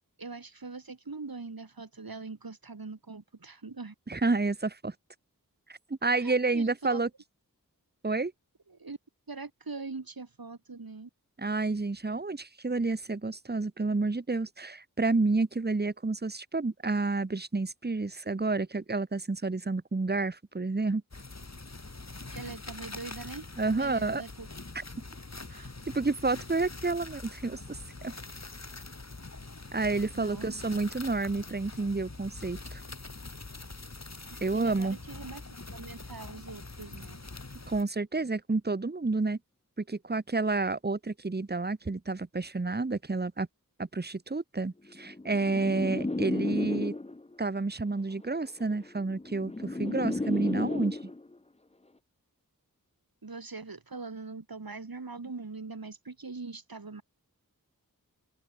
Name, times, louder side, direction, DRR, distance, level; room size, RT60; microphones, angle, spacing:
voice 1, 0.2-3.9 6.2-7.0 8.7-9.0 9.3-11.1 22.3-24.5 25.5-25.7 30.1-30.6 34.3-35.4 35.7-37.2 53.2-57.0, right 3 dB, 80° right, 2.6 m, -42 dB
voice 2, 4.1-4.9 5.7-7.1 8.0-8.3 11.4-21.0 23.6-24.2 24.7-24.8 25.9-28.1 29.7-32.8 34.4-35.0 37.7-39.4 39.9-43.5 43.8-46.9 47.4-51.1, right 3 dB, 30° right, 1.0 m, -30 dB
sound 1, 21.1-37.8, left 3 dB, 50° left, 2.1 m, -44 dB
sound 2, 45.0-47.3 48.4-51.3, left 2 dB, 20° left, 0.7 m, -33 dB
open air
wide cardioid pair, 45°, 35 cm